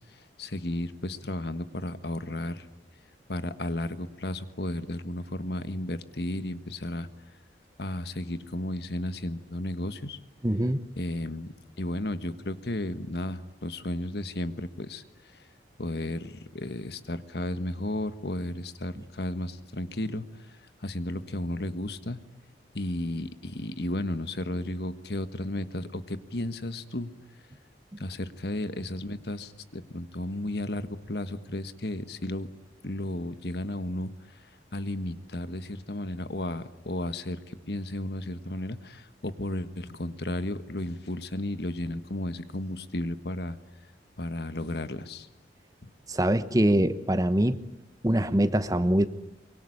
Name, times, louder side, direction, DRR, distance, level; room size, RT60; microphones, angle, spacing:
voice 1, 0.4-2.7 3.3-7.1 7.8-10.2 11.0-15.0 15.3-15.4 15.8-20.5 20.8-22.2 22.7-27.1 28.0-32.5 32.8-34.4 34.7-43.6 44.2-45.3 45.8-45.9, left 1 dB, 60° left, 11 dB, 1.5 m, -33 dB
voice 2, 10.4-10.8 46.1-47.6 48.0-49.1, right 1 dB, 20° right, 13 dB, 1.0 m, -23 dB
24.5 x 23.5 x 9.9 m, 0.95 s
head